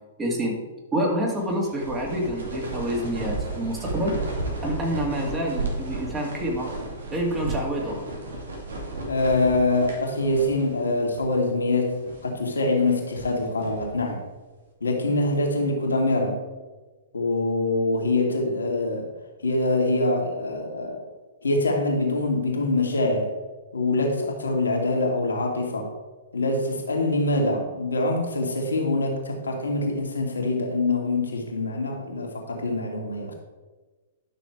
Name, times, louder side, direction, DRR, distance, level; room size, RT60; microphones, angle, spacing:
voice 1, 0.2-0.6 0.9-4.2 4.6-6.7 7.1-8.0, equal, 20° right, -1 dB, 2.5 m, -27 dB
sound 1, 1.3-10.9 11.1-11.2 11.8-12.3 12.9-14.0, right 2 dB, 70° right, 2.4 m, -34 dB
voice 2, 9.1-14.2 14.8-16.4 17.1-19.1 19.4-21.1 21.4-23.3 23.7-25.9 26.3-33.3, left 2 dB, 75° left, 1 dB, 2.2 m, -24 dB
11.5 x 6.3 x 4.6 m, 1.3 s
figure-of-eight pair, 110°, 0 cm